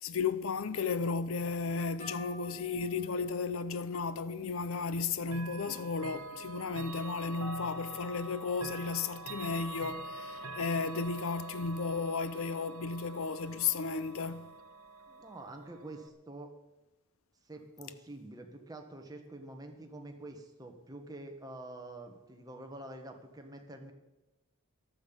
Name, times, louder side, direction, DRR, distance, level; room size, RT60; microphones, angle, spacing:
voice 1, 0.0-14.5, left 4 dB, 70° left, 0.6 m, -34 dB
sound 1, 2.0-5.6, left 1 dB, 35° left, 4.7 m, -52 dB
Chime / Clock, 5.3-16.1, right 2 dB, 85° right, 1.3 m, -45 dB
voice 2, 15.1-16.5 17.4-23.9, right 2 dB, 15° right, 1.4 m, -47 dB
14.0 x 12.0 x 5.4 m
head